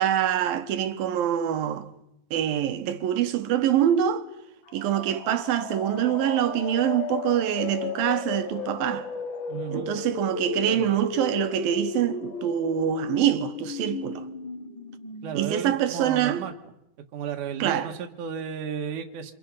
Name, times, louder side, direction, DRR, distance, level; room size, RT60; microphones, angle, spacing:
voice 1, 0.0-1.9 2.3-4.3 4.7-9.1 9.7-14.2 15.3-16.4 17.6-17.9, right 11 dB, 85° right, 3.0 m, -25 dB
sound 1, 4.7-16.4, left 5 dB, 45° left, 1.8 m, -35 dB
voice 2, 9.5-10.0 10.7-10.9 15.2-16.5 17.1-19.3, right 7 dB, 65° right, 2.9 m, -33 dB
27.5 x 27.5 x 5.6 m
omnidirectional pair, 4.0 m